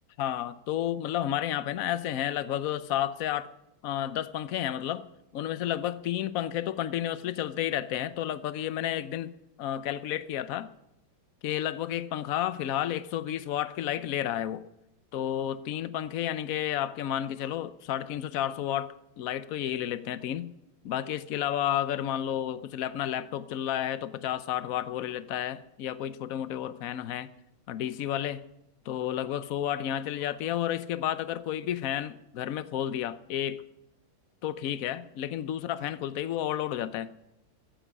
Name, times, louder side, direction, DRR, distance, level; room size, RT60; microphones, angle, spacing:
voice 1, 0.2-3.5 3.8-5.0 5.3-9.3 9.6-10.7 11.4-14.6 15.1-20.5 20.8-27.3 27.7-28.4 28.9-33.6 34.4-37.1, left 11 dB, 70° left, 14 dB, 0.8 m, -31 dB
14.0 x 10.0 x 8.2 m, 0.86 s
omnidirectional pair, 2.2 m